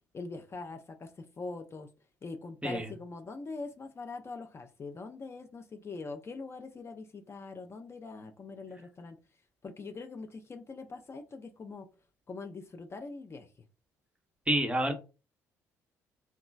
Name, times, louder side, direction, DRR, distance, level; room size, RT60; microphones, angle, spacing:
voice 1, 0.1-1.1 1.4-1.9 2.2-9.2 9.6-11.9 12.3-13.5, left 3 dB, 30° left, 0.4 m, -42 dB
voice 2, 14.5-14.9, right 1 dB, 15° right, 0.8 m, -28 dB
2.9 x 2.3 x 2.4 m
figure-of-eight pair, 45°, 8 cm